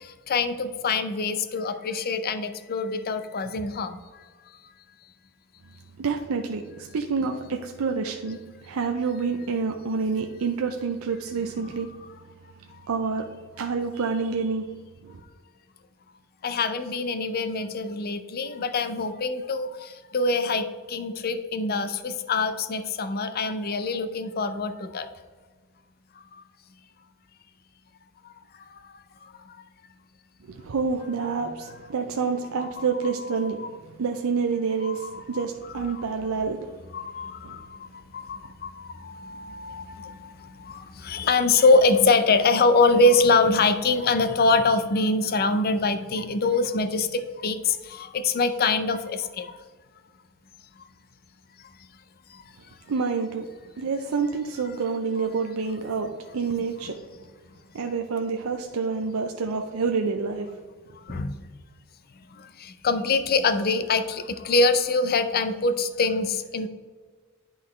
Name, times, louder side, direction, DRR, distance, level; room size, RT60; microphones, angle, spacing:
voice 1, 0.3-4.0 11.6-11.8 16.4-25.1 32.8-33.1 33.4-33.7 34.8-35.4 35.9-36.0 36.9-49.6 61.1-61.5 62.4-66.7, left 3 dB, 45° left, 11 dB, 0.5 m, -24 dB
voice 2, 6.0-11.9 12.9-13.2 13.6-14.7 15.0-15.2 30.4-33.6 34.0-36.6 37.4-37.6 52.9-53.5 53.8-57.0 57.7-60.5, right 5 dB, 70° right, 4 dB, 0.5 m, -28 dB
11.0 x 3.9 x 3.1 m, 1.4 s
head